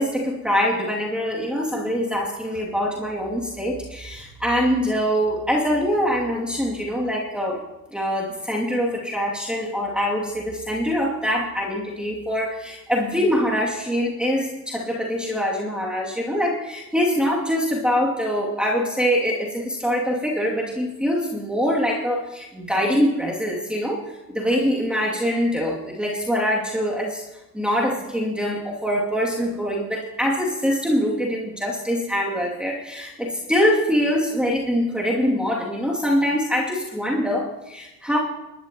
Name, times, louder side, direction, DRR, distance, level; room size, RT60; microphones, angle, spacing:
voice 1, 0.0-7.6 7.9-27.2 27.5-38.2, equal, ahead, -4 dB, 2.5 m, -24 dB
21.5 x 12.0 x 3.0 m, 0.97 s
hypercardioid pair, 75°, 43 cm